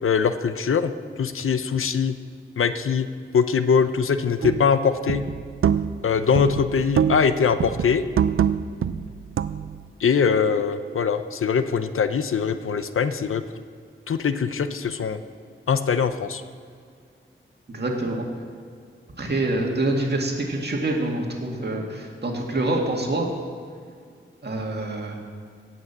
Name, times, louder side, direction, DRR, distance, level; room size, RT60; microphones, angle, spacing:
voice 1, 0.0-0.9 1.2-2.2 2.6-3.1 3.3-5.2 6.0-8.0 10.0-13.4 14.1-15.2 15.7-16.4, left 6 dB, 85° left, 11 dB, 0.6 m, -22 dB
sound 1, 4.4-4.7 5.1-6.1 6.4-7.3 7.6-9.8, right 8 dB, 85° right, 0.4 m, -24 dB
voice 2, 17.7-18.3 19.2-23.3 24.4-25.2, right 2 dB, 50° right, 0 dB, 2.1 m, -26 dB
17.0 x 6.3 x 7.3 m, 2.2 s
wide cardioid pair, 105°, 21 cm